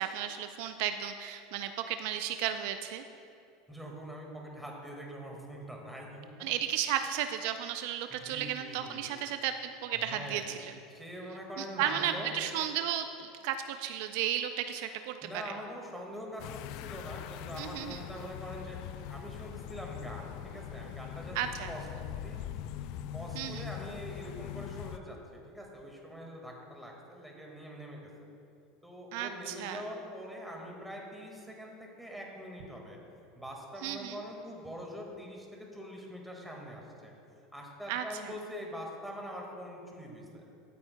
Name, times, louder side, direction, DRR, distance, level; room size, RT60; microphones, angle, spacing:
voice 1, 0.0-3.0 6.4-10.7 11.6-15.6 17.6-18.0 21.3-21.7 23.3-23.7 29.1-29.8 33.8-34.2 37.9-38.3, right 10 dB, 70° right, 8 dB, 0.4 m, -34 dB
voice 2, 3.7-6.3 8.1-9.1 9.9-10.5 10.9-12.3 15.2-22.4 23.1-25.2 25.5-28.1 28.8-33.0 33.4-37.1 37.5-40.4, equal, ahead, -1 dB, 1.8 m, -44 dB
sound 1, 16.4-25.0, left 11 dB, 60° left, 0.3 m, -42 dB
13.5 x 8.4 x 2.2 m, 2.6 s
supercardioid pair, 115°, 0 cm